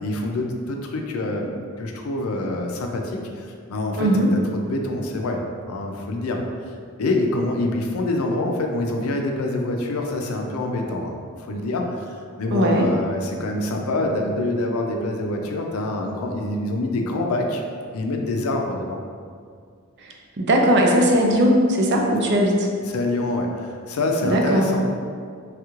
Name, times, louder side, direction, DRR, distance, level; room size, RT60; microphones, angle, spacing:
voice 1, 0.0-4.2 4.5-5.4 5.7-6.4 7.0-17.6 17.9-19.0 22.9-25.0, left 2 dB, 75° left, 2 dB, 0.4 m, -26 dB
voice 2, 4.0-4.3 12.5-12.9 20.0-22.7 24.2-24.7, equal, 55° right, 0 dB, 0.4 m, -19 dB
3.2 x 2.4 x 3.0 m, 2.1 s
head